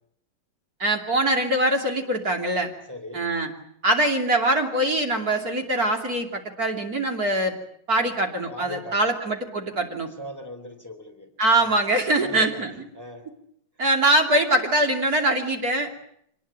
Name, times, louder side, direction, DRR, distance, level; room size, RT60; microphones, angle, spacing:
voice 1, 0.8-2.7 3.1-3.5 3.8-7.5 7.9-10.1 11.4-12.8 13.8-16.0, right 1 dB, 50° right, 4 dB, 3.3 m, -23 dB
voice 2, 2.9-3.3 8.0-8.1 8.5-9.2 10.2-11.7 12.2-12.6 12.9-13.3, equal, 10° left, 6 dB, 3.3 m, -39 dB
25.5 x 20.0 x 8.8 m, 0.72 s
omnidirectional pair, 2.1 m